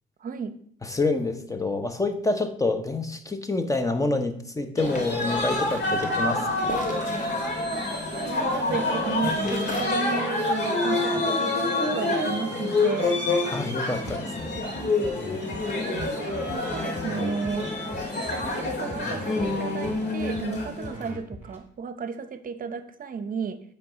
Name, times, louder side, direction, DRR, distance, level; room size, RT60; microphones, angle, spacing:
voice 1, 0.2-0.6 7.7-7.8 8.1-13.2 15.7-17.7 18.1-23.6, right 5 dB, 45° right, 10 dB, 0.7 m, -34 dB
voice 2, 0.8-6.8 13.5-14.5, left 2 dB, 15° left, 8 dB, 0.8 m, -27 dB
sound 1, 4.8-21.1, left 2 dB, 60° left, 2.0 m, -27 dB
sound 2, 4.8-9.8, left 2 dB, 40° left, 1.5 m, -42 dB
sound 3, 14.0-21.6, right 1 dB, 10° right, 1.9 m, -40 dB
8.8 x 3.3 x 5.1 m, 0.63 s
cardioid pair, 90°, 20 cm